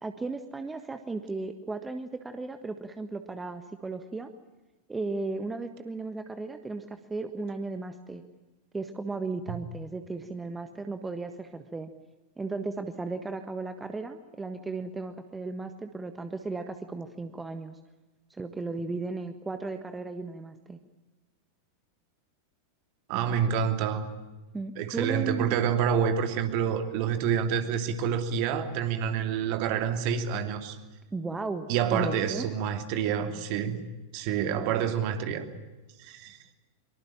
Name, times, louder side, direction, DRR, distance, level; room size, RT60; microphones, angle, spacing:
voice 1, 0.0-4.3 4.9-8.2 8.7-11.9 12.4-17.8 18.4-20.8 24.5-25.6 31.1-32.5, right 3 dB, 10° right, 1.5 m, -35 dB
voice 2, 23.1-24.1 24.8-30.8 31.7-33.8 34.1-35.5 36.0-36.4, right 8 dB, 45° right, 2.9 m, -28 dB
24.5 x 23.5 x 8.9 m
figure-of-eight pair, 90°, 0 cm